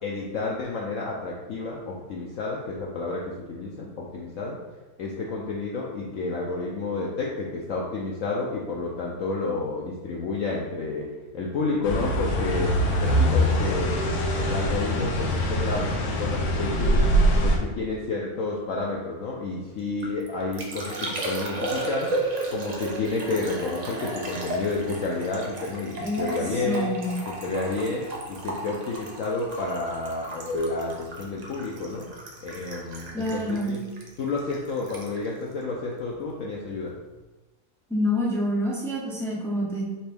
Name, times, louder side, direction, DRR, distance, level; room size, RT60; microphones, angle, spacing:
voice 1, 0.0-4.6 5.0-12.7 13.0-14.0 14.4-17.1 17.4-22.1 22.5-26.9 27.4-32.1 32.4-33.8 34.2-36.9, left 3 dB, 65° left, -3 dB, 0.8 m, -30 dB
sound 1, 11.8-17.6, equal, 85° left, 1.3 m, -23 dB
Liquid, 19.8-36.4 36.7-37.2, right 2 dB, 80° right, 0.3 m, -35 dB
voice 2, 26.0-27.2 33.1-33.8 37.9-39.8, left 1 dB, 5° left, -5 dB, 0.4 m, -27 dB
4.3 x 3.4 x 3.4 m, 1.1 s
omnidirectional pair, 1.7 m